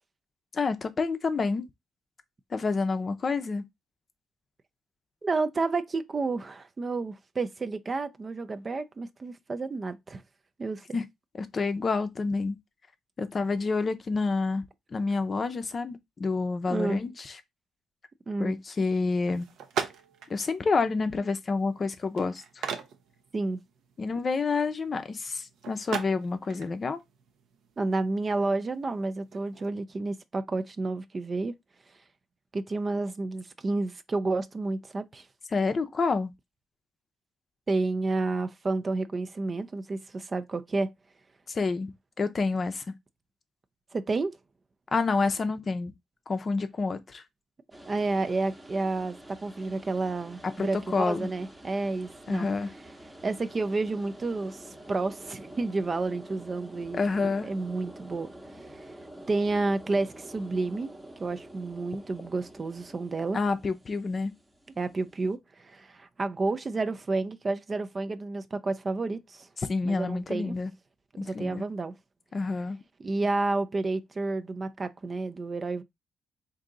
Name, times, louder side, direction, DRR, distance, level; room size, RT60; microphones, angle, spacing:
voice 1, 0.5-1.7 2.5-3.6 10.9-11.0 11.4-12.6 13.2-14.7 14.9-17.4 18.4-19.5 20.3-22.6 24.0-27.0 35.5-36.3 41.5-41.9 42.2-42.8 44.9-45.9 46.3-47.2 50.4-51.3 52.3-52.7 56.9-57.5 63.3-64.3 69.6-70.7 71.2-71.7 72.3-72.8, left 4 dB, 40° left, 0.6 m, -28 dB
voice 2, 5.2-10.2 10.6-11.0 16.7-17.0 18.3-18.5 23.3-23.6 27.8-31.5 32.5-35.3 37.7-40.9 43.9-44.3 47.9-52.5 53.2-57.0 57.4-58.3 58.7-58.8 59.3-60.9 61.2-63.4 64.8-69.5 69.8-70.6 71.2-71.9 73.0-75.8, right 3 dB, 30° right, 0.4 m, -30 dB
sound 1, 19.2-29.7, right 7 dB, 75° right, 0.7 m, -41 dB
sound 2, 47.7-65.4, right 1 dB, 10° right, 0.8 m, -48 dB
3.6 x 2.7 x 3.8 m
cardioid pair, 90°, 0 cm